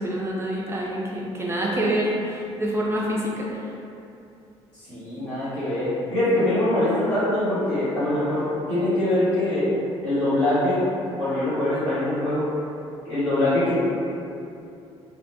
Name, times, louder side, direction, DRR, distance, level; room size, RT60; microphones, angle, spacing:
voice 1, 0.0-3.5, right 1 dB, 15° right, -4 dB, 0.4 m, -26 dB
voice 2, 4.9-9.7 10.0-12.4 13.0-13.8, left 1 dB, 85° left, -16 dB, 1.2 m, -23 dB
2.3 x 2.0 x 2.7 m, 2.6 s
figure-of-eight pair, 50°, 15 cm